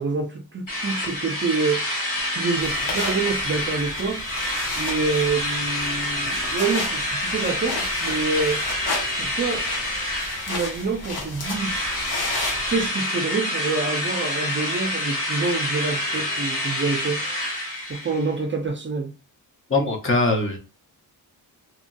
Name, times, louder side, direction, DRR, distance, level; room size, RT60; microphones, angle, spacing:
voice 1, 0.0-1.8 2.3-4.2 4.8-8.6 9.2-9.6 10.5-11.9 12.7-17.2 17.9-19.1, right 4 dB, 30° right, 0.4 m, -26 dB
Drill, 0.7-11.1 11.4-18.3, left 1 dB, 55° left, 1.4 m, -27 dB
sound 1, 2.6-12.9, left 2 dB, 75° left, 1.0 m, -34 dB
voice 2, 19.7-20.6, left 2 dB, 35° left, 0.7 m, -21 dB
2.8 x 2.7 x 2.2 m
wide cardioid pair, 135°, 38 cm